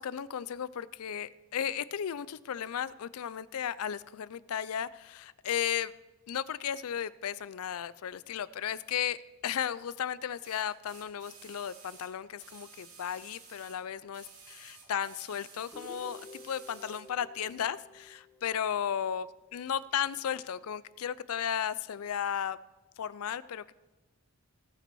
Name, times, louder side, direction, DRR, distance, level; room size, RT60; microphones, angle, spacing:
voice 1, 0.0-5.9 6.3-22.6 23.0-23.7, left 9 dB, 70° left, 18 dB, 0.4 m, -35 dB
sound 1, 8.8-9.0 10.4-13.8 14.1-17.1 18.0-18.1, right 5 dB, 75° right, 2.3 m, -53 dB
Guitar, 15.7-19.6, left 1 dB, 5° left, 1.6 m, -52 dB
19.0 x 6.8 x 4.7 m, 1.1 s
head